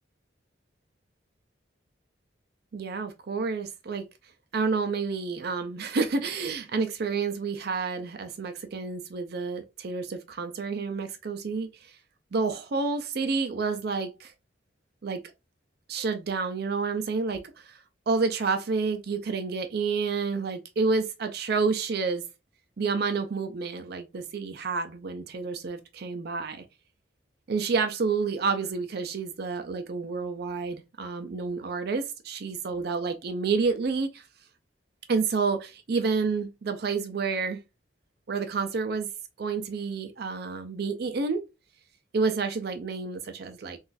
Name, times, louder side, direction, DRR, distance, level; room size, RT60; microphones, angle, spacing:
voice 1, 2.7-4.1 4.5-11.9 12.3-14.3 15.0-15.2 15.9-17.8 18.1-22.2 22.8-26.6 27.5-34.2 35.1-37.6 38.3-39.1 39.4-41.4 42.1-43.8, right 4 dB, 55° right, 0.4 m, -29 dB
3.8 x 2.4 x 2.5 m
head